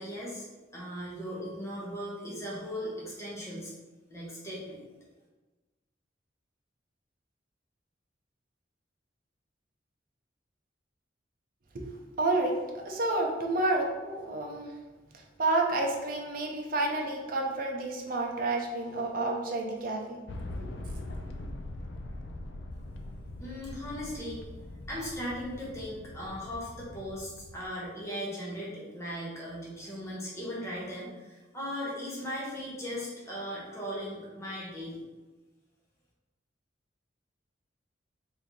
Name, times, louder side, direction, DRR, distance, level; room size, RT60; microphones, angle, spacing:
voice 1, 0.0-3.7 4.1-4.8 23.4-24.4 24.9-35.0, equal, 15° left, -6 dB, 0.9 m, -38 dB
voice 2, 12.2-12.5 12.8-14.7 15.1-20.2, right 2 dB, 50° right, 1 dB, 0.5 m, -30 dB
sound 1, 20.3-27.7, left 1 dB, 65° left, 0.4 m, -42 dB
3.1 x 2.6 x 3.7 m, 1.2 s
head